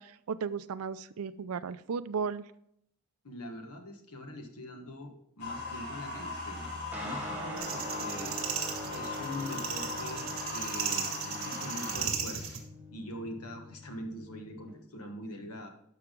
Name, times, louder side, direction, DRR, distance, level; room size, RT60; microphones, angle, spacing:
voice 1, 0.0-2.4, right 6 dB, 80° right, 14 dB, 0.4 m, -35 dB
voice 2, 3.2-6.7 7.0-8.4 8.9-12.6 12.9-15.7, left 1 dB, 90° left, 4 dB, 1.3 m, -43 dB
sound 1, 5.4-12.1, left 2 dB, 50° left, 2.9 m, -39 dB
sound 2, 6.9-14.7, left 1 dB, 5° right, 1.1 m, -44 dB
sound 3, 7.6-12.6, right 7 dB, 60° right, 1.8 m, -36 dB
11.5 x 5.8 x 3.7 m, 0.72 s
head